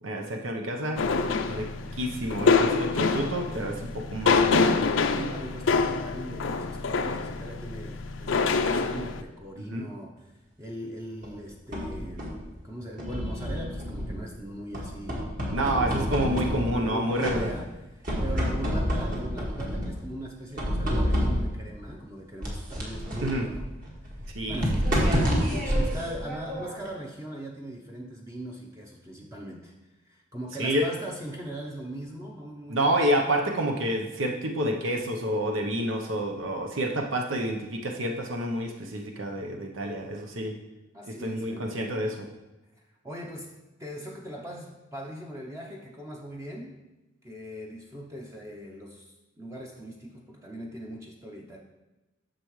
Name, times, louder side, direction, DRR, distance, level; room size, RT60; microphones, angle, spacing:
voice 1, 0.0-1.0 1.4-4.7 9.7-9.9 15.5-17.5 23.2-23.4 24.3-24.6 30.6-30.9 32.7-40.5 41.2-42.2, right 1 dB, 85° right, 2 dB, 0.8 m, -28 dB
sound 1, 1.0-9.2, left 4 dB, 75° left, 0.5 m, -26 dB
voice 2, 5.1-23.7 24.0-29.7 30.0-33.2 40.9-41.8 43.0-43.5 43.8-46.8 47.2-51.6, equal, 15° right, -1 dB, 0.7 m, -40 dB
Scratch Glass, 11.2-12.5 13.0-14.3 14.7-16.9 17.2-17.8 18.0-20.0 20.6-21.7 22.4-26.9, equal, 45° right, 1.8 m, -29 dB
10.0 x 6.7 x 3.1 m, 1.1 s
head